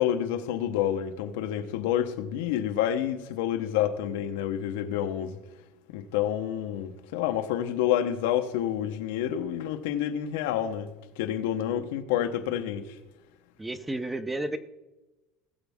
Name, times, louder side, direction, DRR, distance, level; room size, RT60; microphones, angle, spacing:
voice 1, 0.0-5.4 5.9-10.9 11.2-12.9, left 10 dB, 90° left, 0.9 m, -28 dB
voice 2, 11.4-11.9 13.6-14.6, right 2 dB, 5° right, 0.5 m, -33 dB
19.0 x 7.3 x 3.6 m
cardioid pair, 160°, 0 cm